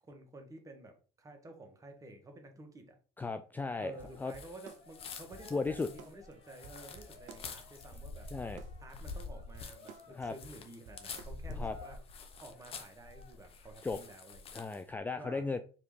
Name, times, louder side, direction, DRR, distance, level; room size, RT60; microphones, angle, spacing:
voice 1, 0.1-3.0 3.8-8.3 8.8-12.0 12.4-14.7 15.1-15.4, right 2 dB, 25° right, 1.4 m, -52 dB
voice 2, 3.2-3.9 4.2-4.3 5.5-5.9 8.3-8.6 10.2-10.4 11.5-11.8 13.8-14.0 14.5-15.6, left 4 dB, 10° left, 0.3 m, -35 dB
Cheering, 3.6-13.6, left 4 dB, 65° left, 1.9 m, -59 dB
sound 1, 4.0-5.0 5.3-6.3 6.6-7.6 7.9-8.9 9.2-11.5, right 6 dB, 60° right, 0.6 m, -53 dB
sound 2, 4.2-14.9, left 4 dB, 40° left, 0.9 m, -47 dB
4.7 x 3.4 x 3.3 m
supercardioid pair, 85°, 14 cm